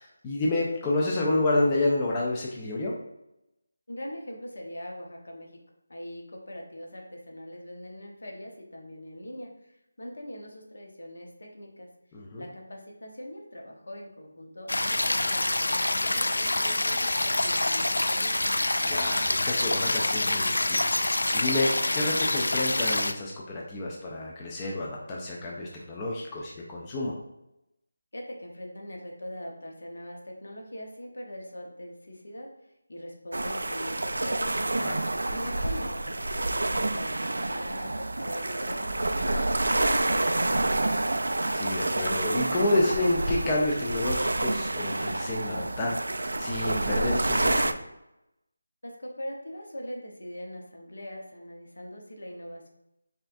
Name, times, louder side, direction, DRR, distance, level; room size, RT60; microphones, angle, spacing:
voice 1, 0.0-2.9 12.1-12.4 18.8-27.1 34.8-35.0 41.5-47.7, left 2 dB, 15° left, -3 dB, 0.3 m, -29 dB
voice 2, 3.9-5.6 5.9-11.9 12.4-18.5 28.1-32.5 32.9-34.7 35.3-40.9 48.8-52.7, equal, 70° left, 1 dB, 1.0 m, -41 dB
sound 1, 14.7-23.1, left 2 dB, 90° left, 0.3 m, -26 dB
sound 2, 33.3-47.7, right 2 dB, 85° right, 0.3 m, -28 dB
5.5 x 2.4 x 2.5 m, 0.88 s
figure-of-eight pair, 175°, 0 cm